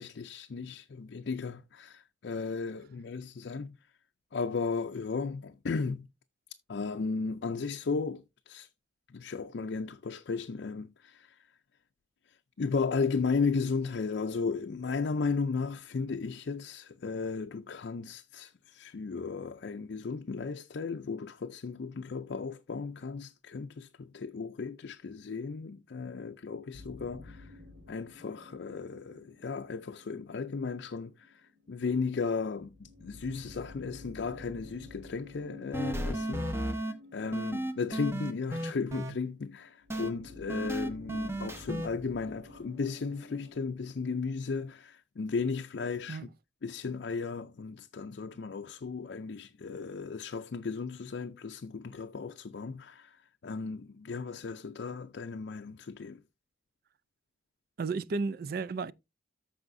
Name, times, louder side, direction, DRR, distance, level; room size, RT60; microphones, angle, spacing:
voice 1, 0.0-3.8 4.3-6.1 6.7-8.7 9.1-11.4 12.6-27.5 27.9-31.4 31.7-36.8 37.1-46.3 46.6-56.2, left 4 dB, 60° left, 0.5 m, -35 dB
sound 1, 26.7-31.8 32.2-32.4 32.6-43.5, left 3 dB, 85° right, 3.2 m, -51 dB
sound 2, 35.7-36.9 37.3-39.1 39.9-40.1 40.5-41.9, right 1 dB, 15° right, 0.9 m, -33 dB
voice 2, 57.8-58.9, right 4 dB, 50° right, 0.4 m, -33 dB
14.0 x 4.9 x 2.6 m
head